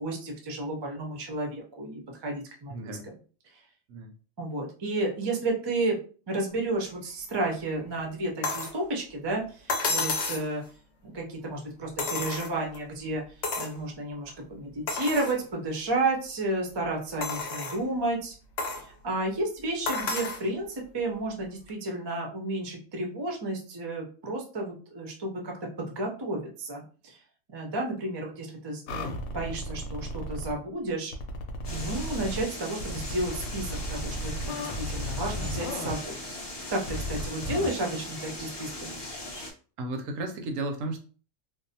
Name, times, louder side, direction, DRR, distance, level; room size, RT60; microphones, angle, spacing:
voice 1, 0.0-2.8 3.0-3.1 4.4-6.0 6.3-10.6 11.0-13.2 13.6-18.3 18.8-27.2 27.5-31.1 31.7-36.2 36.7-36.8 37.1-39.0, right 2 dB, 40° right, 1 dB, 0.3 m, -32 dB
voice 2, 2.7-3.1 3.9-4.1 39.8-41.0, right 2 dB, 75° right, 4 dB, 0.9 m, -33 dB
sound 1, 8.4-8.8 9.7-10.5 12.0-12.8 13.4-13.8 14.3-14.4 14.9-15.4 16.0-16.1 17.2-17.8 18.6-18.9 19.9-20.4 21.7-21.8, left 3 dB, 60° left, 0.8 m, -31 dB
sound 2, 28.9-30.6 31.1-32.4 32.8-35.9 36.9-37.7, equal, 85° left, 1.0 m, -35 dB
sound 3, 31.6-39.5, left 1 dB, 40° left, 0.3 m, -39 dB
2.6 x 2.0 x 2.7 m, 0.39 s
omnidirectional pair, 1.4 m